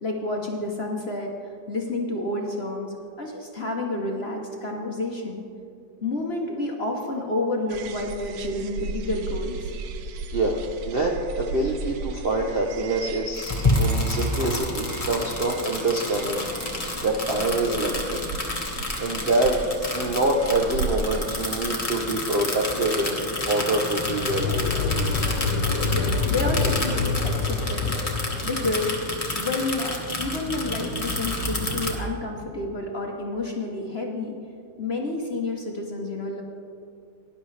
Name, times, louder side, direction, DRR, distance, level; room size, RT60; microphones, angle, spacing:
voice 1, 0.0-5.4 6.0-9.7 25.8-28.0 28.4-29.0 29.3-34.4 34.8-36.4, left 2 dB, 45° left, 1 dB, 0.9 m, -29 dB
sound 1, 7.7-21.5, right 4 dB, 80° right, 1.3 m, -36 dB
voice 2, 10.3-16.5 17.0-18.2 19.0-19.6 19.9-25.0, right 2 dB, 50° right, 0 dB, 0.7 m, -25 dB
sound 2, 13.3-31.9, left 1 dB, 20° left, 1.5 m, -29 dB
sound 3, 24.0-29.2, left 4 dB, 75° left, 1.5 m, -26 dB
18.5 x 10.5 x 3.3 m, 2.4 s
omnidirectional pair, 2.0 m